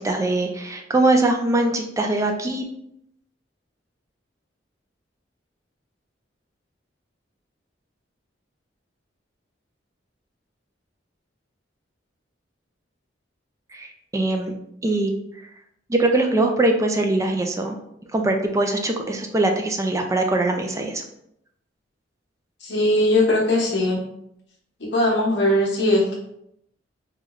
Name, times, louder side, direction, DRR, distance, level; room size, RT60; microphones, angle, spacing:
voice 1, 0.0-2.6 13.7-14.5 14.8-15.1 15.9-17.7 18.1-21.0, right 2 dB, 15° right, 3 dB, 0.3 m, -22 dB
voice 2, 22.6-24.0 24.8-26.2, left 1 dB, 65° left, -3 dB, 0.9 m, -20 dB
3.4 x 2.3 x 3.1 m, 0.75 s
head